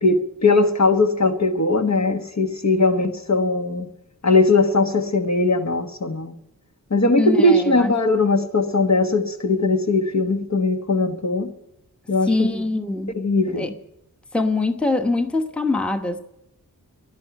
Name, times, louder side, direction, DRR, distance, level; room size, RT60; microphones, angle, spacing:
voice 1, 0.0-3.9 4.2-6.3 6.9-11.5 12.1-12.5 13.2-13.7, left 2 dB, 50° left, 5 dB, 1.5 m, -19 dB
voice 2, 7.2-7.9 12.3-13.2 13.5-13.7 14.3-16.2, left 2 dB, 5° left, 6 dB, 1.0 m, -23 dB
11.0 x 11.0 x 9.1 m, 0.86 s
wide cardioid pair, 70°, 36 cm